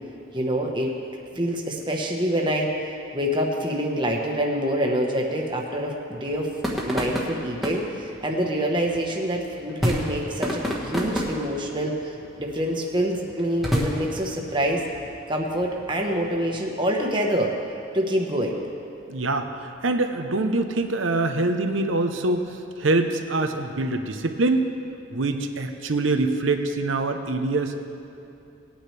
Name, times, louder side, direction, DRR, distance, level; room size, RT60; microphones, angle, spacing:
voice 1, 0.3-0.9 1.3-6.6 6.8-14.8 15.3-17.5 17.9-18.6, equal, 25° right, 0 dB, 1.2 m, -26 dB
sound 1, 6.2-16.6, equal, ahead, 1.4 m, -31 dB
voice 2, 19.1-22.5 22.8-24.7 25.1-27.8, right 2 dB, 85° right, 6 dB, 0.8 m, -24 dB
19.5 x 9.3 x 3.4 m, 2.7 s
head